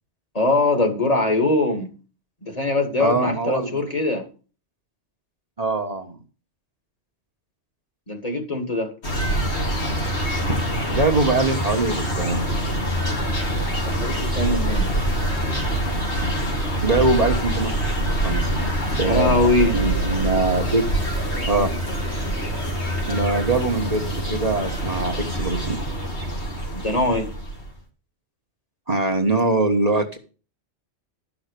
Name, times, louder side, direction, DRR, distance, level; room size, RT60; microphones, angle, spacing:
voice 1, 0.3-1.9 2.4-4.3 8.1-8.9 13.8-14.9 19.0-19.8 26.7-27.3, left 2 dB, 35° left, 4 dB, 2.3 m, -22 dB
voice 2, 3.0-3.7 5.6-6.2 10.5-10.6 10.9-12.5 16.8-17.7 18.2-20.8 21.5-21.7 23.1-25.8 28.9-30.2, right 2 dB, 35° right, 3 dB, 1.4 m, -23 dB
sound 1, 9.0-27.7, right 1 dB, 70° left, 3.3 m, -25 dB
12.5 x 6.1 x 6.7 m, 0.36 s
omnidirectional pair, 1.2 m